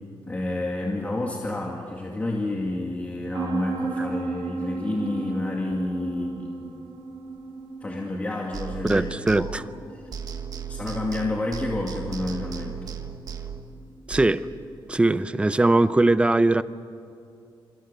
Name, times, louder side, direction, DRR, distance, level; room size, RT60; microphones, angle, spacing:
voice 1, 0.2-6.7 7.8-9.0 9.4-9.5 9.9-10.0 10.7-12.8, left 2 dB, 15° left, -1 dB, 2.2 m, -29 dB
sound 1, 3.3-14.8, right 3 dB, 70° right, 3.2 m, -36 dB
sound 2, 8.5-9.9 10.1-14.3, right 8 dB, 45° right, 1.4 m, -36 dB
voice 2, 8.8-9.6 14.1-14.5 14.9-16.6, right 2 dB, 15° right, 14 dB, 0.6 m, -20 dB
27.5 x 26.0 x 6.9 m, 2.6 s
wide cardioid pair, 175°, 9 cm